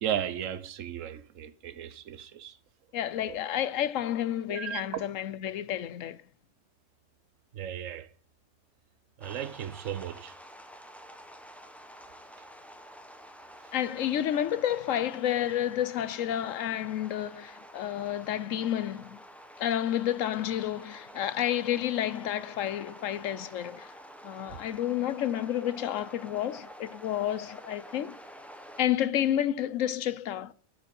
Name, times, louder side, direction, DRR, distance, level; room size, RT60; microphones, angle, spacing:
voice 1, 0.0-2.5 3.3-3.4 4.5-4.8 7.5-8.1 9.2-10.3, right 9 dB, 85° right, 1.2 m, -35 dB
voice 2, 2.9-6.2 13.7-19.2 19.6-23.9 24.2-28.2 28.8-30.5, left 11 dB, 90° left, 1.1 m, -30 dB
sound 1, 9.2-28.8, equal, ahead, 1.0 m, -49 dB
11.0 x 6.8 x 5.4 m
omnidirectional pair, 1.3 m